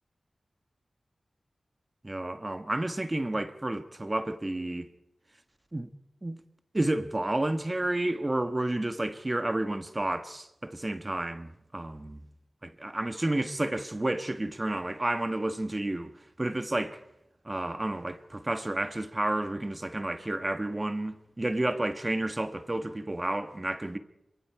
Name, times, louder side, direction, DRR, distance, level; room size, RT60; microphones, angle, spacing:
voice 1, 2.0-4.9 5.7-5.9 6.2-6.4 6.7-12.2 12.6-16.1 16.4-17.0 17.4-24.0, right 1 dB, 30° right, 1.4 m, -31 dB
26.0 x 23.5 x 4.8 m
cardioid pair, 55°, 0 cm